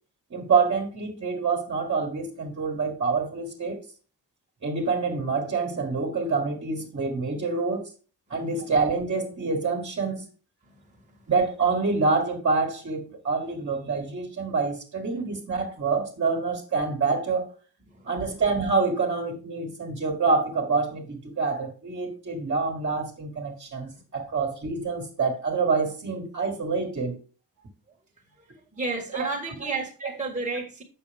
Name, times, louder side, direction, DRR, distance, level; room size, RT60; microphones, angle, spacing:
voice 1, 0.3-3.8 4.6-7.8 8.3-10.2 11.3-17.5 18.0-27.2 29.1-29.3 29.6-29.7, right 4 dB, 40° right, 1.8 m, -26 dB
voice 2, 28.7-30.8, right 3 dB, 20° right, 1.7 m, -31 dB
8.3 x 6.7 x 3.5 m
wide cardioid pair, 130°, 38 cm